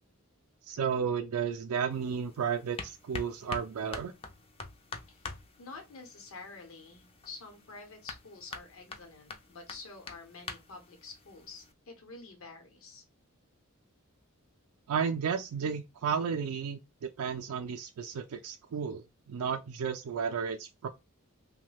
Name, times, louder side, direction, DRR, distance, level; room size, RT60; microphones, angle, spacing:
voice 1, 0.7-4.1 14.9-20.9, right 6 dB, 85° right, 0.4 m, -33 dB
sound 1, 1.9-11.7, left 3 dB, 25° left, 0.4 m, -46 dB
voice 2, 5.1-13.0, left 3 dB, 70° left, 0.8 m, -49 dB
3.0 x 2.1 x 3.2 m
head